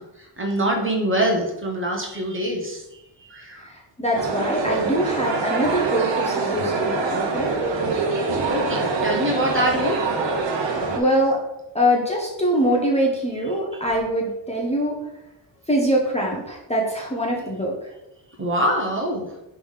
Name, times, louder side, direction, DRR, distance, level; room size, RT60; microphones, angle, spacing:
voice 1, 0.0-2.8 3.2-3.7 8.4-10.8 18.4-19.3, right 1 dB, 25° right, 0 dB, 1.1 m, -25 dB
voice 2, 3.6-7.5 11.0-11.4 11.7-15.0 15.7-17.7, equal, 15° left, -2 dB, 0.8 m, -23 dB
sound 1, 4.1-11.0, right 4 dB, 65° right, 1.1 m, -24 dB
5.0 x 3.5 x 5.6 m, 0.89 s
wide cardioid pair, 175°, 48 cm